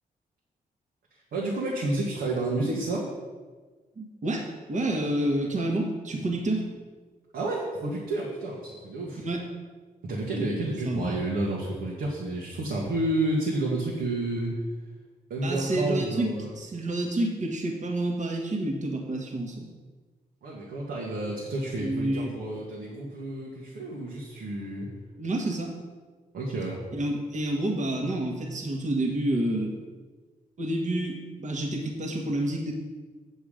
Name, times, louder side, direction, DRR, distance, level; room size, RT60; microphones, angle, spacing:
voice 1, 1.3-3.1 7.3-9.2 10.0-14.5 15.3-16.5 20.4-24.9 26.3-26.8, right 2 dB, 85° right, -4 dB, 1.6 m, -30 dB
voice 2, 4.0-6.7 9.2-9.4 10.8-11.2 15.4-19.7 21.8-22.3 25.2-25.7 26.9-29.8 30.6-32.7, right 1 dB, 50° right, 1 dB, 1.5 m, -29 dB
8.2 x 7.0 x 5.1 m, 1.4 s
cardioid pair, 90°, 16 cm